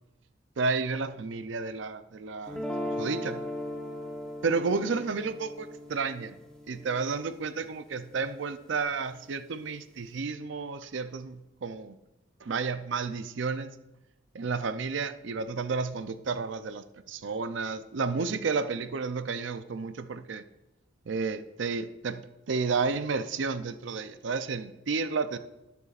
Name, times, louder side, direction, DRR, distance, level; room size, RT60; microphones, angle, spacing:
voice 1, 0.6-3.4 4.4-6.4 6.7-12.0 12.4-13.7 14.3-20.4 21.1-22.2 22.5-25.4, right 4 dB, 70° right, 11 dB, 0.5 m, -31 dB
sound 1, 2.5-8.6, left 1 dB, 5° left, 1.0 m, -38 dB
18.5 x 6.9 x 2.5 m, 0.95 s
head